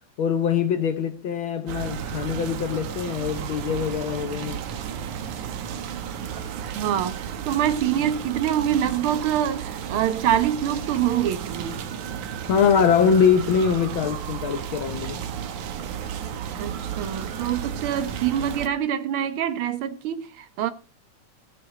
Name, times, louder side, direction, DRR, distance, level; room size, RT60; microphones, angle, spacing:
voice 1, 0.2-4.6 12.4-15.2, left 7 dB, 70° left, 1.2 m, -23 dB
sound 1, 1.7-18.7, right 8 dB, 80° right, 2.7 m, -33 dB
voice 2, 6.6-11.8 16.6-20.7, right 10 dB, 60° right, 1.5 m, -25 dB
14.5 x 12.0 x 3.8 m
omnidirectional pair, 3.4 m